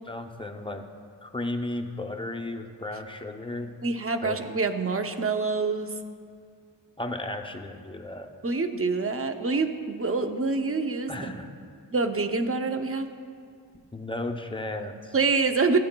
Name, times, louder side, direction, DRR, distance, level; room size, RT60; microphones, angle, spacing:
voice 1, 0.1-0.8 1.2-3.7 4.2-4.4 7.0-8.3 11.1-11.5 13.9-15.1, left 2 dB, 10° left, 5 dB, 0.6 m, -34 dB
voice 2, 3.8-5.9 8.4-11.1 11.9-13.1 15.1-15.8, right 4 dB, 30° right, 7 dB, 0.6 m, -26 dB
15.5 x 8.6 x 2.2 m, 2.2 s
wide cardioid pair, 75°, 45 cm